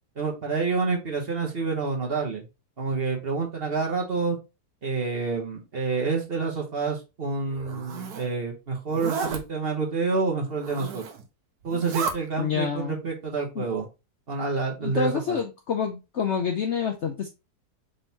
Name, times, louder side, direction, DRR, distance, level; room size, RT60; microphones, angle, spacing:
voice 1, 0.2-2.5 2.8-4.4 4.8-11.0 11.6-13.9 14.3-15.4, right 4 dB, 40° right, 1.1 m, -28 dB
Zipper (clothing), 7.5-8.3 8.9-9.4 10.5-11.2 11.6-12.2, right 5 dB, 70° right, 1.4 m, -33 dB
voice 2, 12.4-12.9 13.6-13.7 14.8-17.3, left 6 dB, 65° left, 0.7 m, -28 dB
5.2 x 3.7 x 2.7 m
omnidirectional pair, 1.8 m